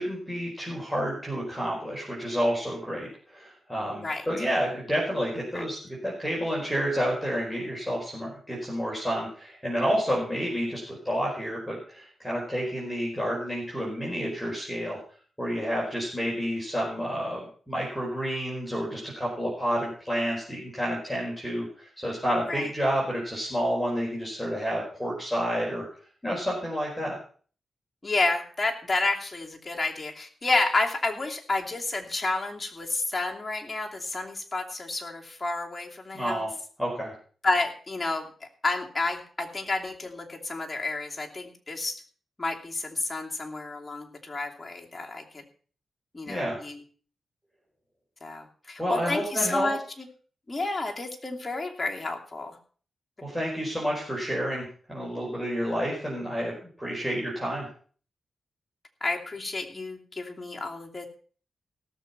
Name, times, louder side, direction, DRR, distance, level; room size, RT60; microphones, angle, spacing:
voice 1, 0.0-15.0 15.4-25.8 26.2-27.2 36.1-36.5 36.8-37.1 46.3-46.6 48.8-49.7 53.2-57.7, equal, ahead, -4 dB, 4.8 m, -30 dB
voice 2, 28.0-36.5 37.4-38.3 38.6-42.0 42.4-45.4 46.1-46.8 48.2-50.1 50.5-52.6 59.0-61.1, left 3 dB, 25° left, 0 dB, 2.8 m, -30 dB
18.0 x 6.9 x 5.6 m, 0.43 s
cardioid pair, 80°, 0 cm